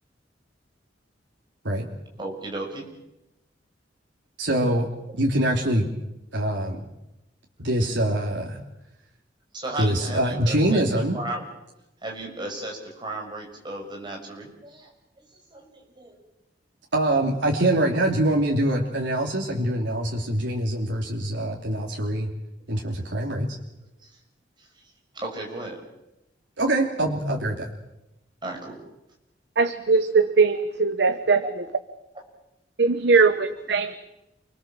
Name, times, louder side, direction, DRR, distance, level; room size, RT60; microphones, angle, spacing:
voice 1, 2.2-2.9 9.5-10.9 11.1-11.4 12.0-14.9 15.2-15.3 15.5-16.2 24.0-24.2 24.6-24.7 25.1-25.8 28.4-28.8 33.2-33.3, right 2 dB, 25° right, 0 dB, 6.8 m, -35 dB
voice 2, 4.4-4.9 5.1-5.9 6.3-6.8 7.6-8.6 9.8-11.2 16.9-22.3 22.7-23.6 26.6-27.6, right 1 dB, 90° right, -1 dB, 3.0 m, -24 dB
voice 3, 29.6-31.4 32.8-33.9, right 4 dB, 65° right, 10 dB, 1.1 m, -20 dB
29.0 x 21.0 x 7.5 m, 0.94 s
head